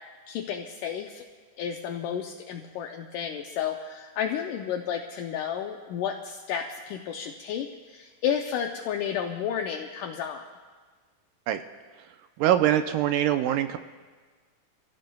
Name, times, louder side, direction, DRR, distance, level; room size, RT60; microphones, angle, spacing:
voice 1, 0.3-1.2 1.6-10.5, left 8 dB, 75° left, 3 dB, 2.1 m, -32 dB
voice 2, 12.4-13.8, right 11 dB, 80° right, 8 dB, 2.1 m, -23 dB
29.0 x 16.0 x 2.3 m, 1.4 s
omnidirectional pair, 4.0 m